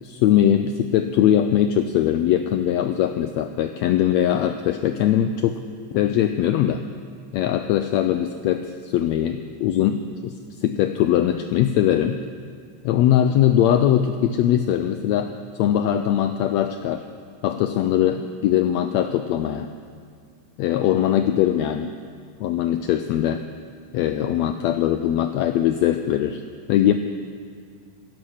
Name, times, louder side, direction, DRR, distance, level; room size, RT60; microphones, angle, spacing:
voice 1, 0.0-5.6 5.9-6.8 7.3-10.3 10.6-12.2 12.8-15.3 15.6-17.0 17.4-19.7 20.6-21.9 22.4-23.4 23.9-26.4 26.7-26.9, left 11 dB, 90° left, 8 dB, 1.5 m, -21 dB
16.0 x 11.0 x 6.4 m, 2.2 s
omnidirectional pair, 3.6 m